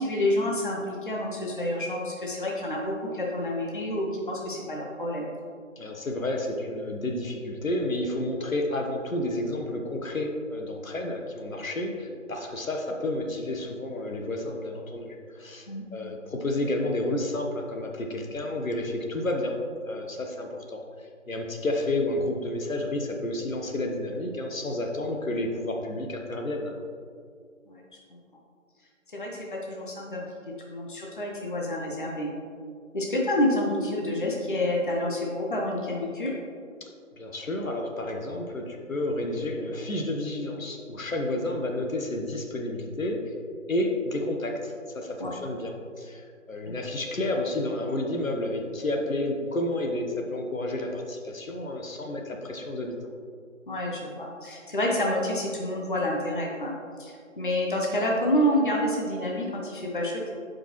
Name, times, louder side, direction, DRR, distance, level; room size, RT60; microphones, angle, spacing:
voice 1, 0.0-5.3 15.7-15.8 27.7-27.8 29.1-30.2 30.6-32.3 32.9-36.3 45.2-45.3 46.7-46.8 53.7-56.7 57.0-60.3, left 1 dB, 40° left, -2 dB, 0.9 m, -28 dB
voice 2, 5.8-19.6 19.8-26.7 36.8-36.9 37.2-43.3 43.7-52.9, left 1 dB, 80° left, 2 dB, 1.2 m, -31 dB
10.0 x 5.2 x 3.1 m, 2.2 s
figure-of-eight pair, 170°, 40 cm